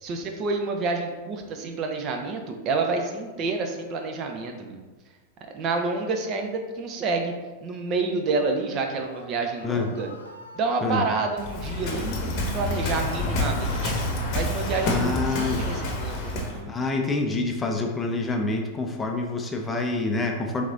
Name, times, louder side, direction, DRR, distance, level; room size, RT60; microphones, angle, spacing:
voice 1, 0.0-4.8 5.5-7.3 7.6-10.1 10.5-13.9 14.3-16.7, right 3 dB, 35° right, 3 dB, 0.5 m, -28 dB
Screaming, 8.7-11.0 11.8-12.2 12.5-14.5 15.1-16.5, left 1 dB, 80° left, 0.6 m, -46 dB
Waves surf, 11.4-16.6, left 1 dB, 40° left, 0.9 m, -28 dB
voice 2, 14.8-15.6 16.7-20.6, left 3 dB, 15° left, 2 dB, 0.5 m, -27 dB
4.8 x 3.3 x 2.7 m, 1.2 s
figure-of-eight pair, 90°, 0 cm